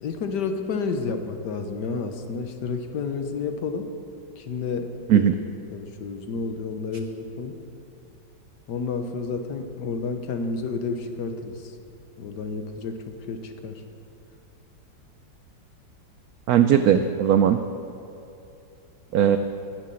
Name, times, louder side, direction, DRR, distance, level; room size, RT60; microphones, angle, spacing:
voice 1, 0.0-3.9 4.4-5.3 5.7-7.6 8.7-11.7 12.2-13.8, left 4 dB, 65° left, 6 dB, 1.4 m, -30 dB
voice 2, 16.5-17.6 19.1-19.4, right 9 dB, 85° right, 9 dB, 0.8 m, -18 dB
11.0 x 9.7 x 7.6 m, 2.7 s
omnidirectional pair, 2.1 m